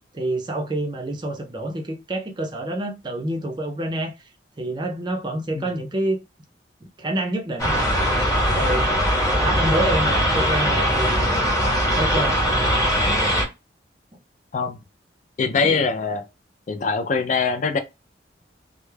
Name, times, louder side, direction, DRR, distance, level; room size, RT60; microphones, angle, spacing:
voice 1, 0.1-4.1 4.6-6.2 7.0-7.8 8.5-8.9 9.3-11.5 11.9-12.7, right 1 dB, 25° right, 0.4 m, -27 dB
sound 1, 7.6-13.4, equal, 15° left, 1.0 m, -20 dB
voice 2, 15.4-16.2 16.7-17.8, left 4 dB, 40° left, 0.3 m, -22 dB
2.2 x 2.0 x 3.1 m
head